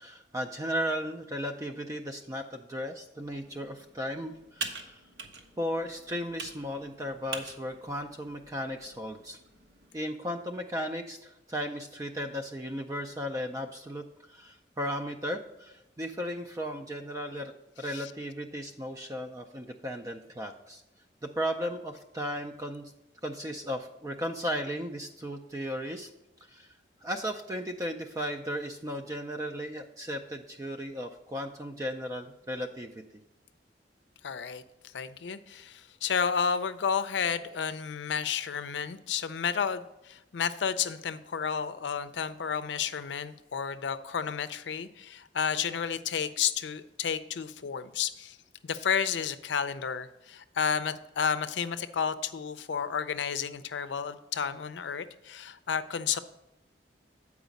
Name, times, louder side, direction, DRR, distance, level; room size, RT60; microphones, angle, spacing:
voice 1, 0.0-5.0 5.6-9.4 9.9-20.8 21.2-22.9 23.2-26.1 26.5-32.9, equal, 20° right, 5 dB, 0.4 m, -35 dB
Computer keyboard, 3.2-9.9, right 4 dB, 80° right, 0.9 m, -44 dB
voice 2, 34.2-48.4 48.6-56.2, left 7 dB, 85° left, 12 dB, 0.5 m, -31 dB
8.1 x 4.8 x 5.1 m, 0.92 s
head